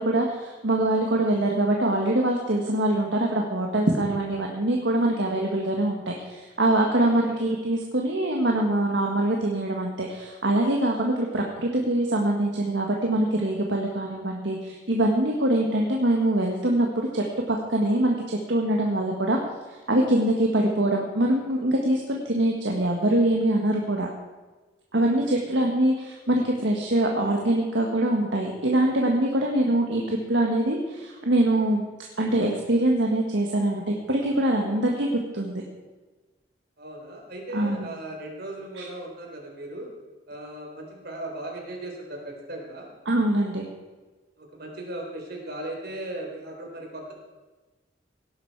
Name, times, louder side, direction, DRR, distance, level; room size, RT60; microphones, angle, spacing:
voice 1, 0.0-19.4 19.9-24.1 24.9-35.1 35.3-35.6 37.5-37.8 38.8-38.9 43.0-43.7, right 1 dB, 75° right, 0 dB, 1.6 m, -24 dB
voice 2, 7.0-7.5 15.5-15.9 25.1-25.6 36.8-39.9 40.3-42.9 44.4-47.1, right 1 dB, 60° right, 0 dB, 3.9 m, -38 dB
18.0 x 11.0 x 4.7 m, 1.3 s
head